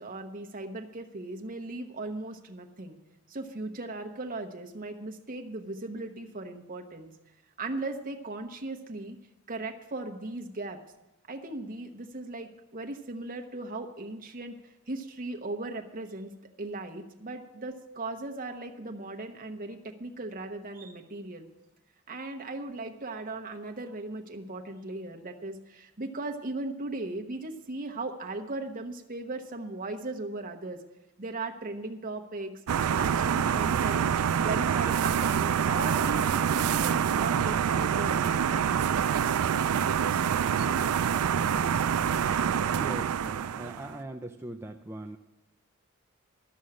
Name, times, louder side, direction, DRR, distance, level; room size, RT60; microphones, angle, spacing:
voice 1, 0.0-3.0 3.3-7.1 7.6-9.2 9.5-10.8 11.3-16.3 16.6-21.5 22.1-30.8 31.2-32.5 32.9-34.1 34.4-38.2, right 2 dB, 40° right, 3 dB, 1.1 m, -37 dB
sound 1, 32.7-43.9, right 8 dB, 85° right, 0.4 m, -26 dB
voice 2, 42.8-45.2, right 2 dB, 10° right, 1 dB, 0.4 m, -40 dB
13.0 x 6.3 x 8.6 m, 0.96 s
head